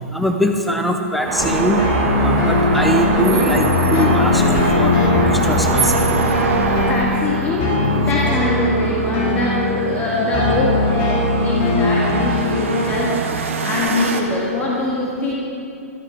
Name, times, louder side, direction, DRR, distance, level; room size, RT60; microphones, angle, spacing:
voice 1, 0.1-1.8 2.2-6.0, equal, ahead, 3 dB, 0.7 m, -22 dB
sound 1, 1.2-6.9, right 3 dB, 35° right, 1.6 m, -23 dB
sound 2, 1.4-13.2, left 2 dB, 40° left, 3.0 m, -20 dB
sound 3, 1.4-14.2, right 5 dB, 55° right, 1.4 m, -28 dB
voice 2, 6.9-7.7 8.0-15.3, left 2 dB, 20° left, -5 dB, 2.0 m, -22 dB
13.5 x 13.0 x 5.1 m, 2.6 s
figure-of-eight pair, 110°, 8 cm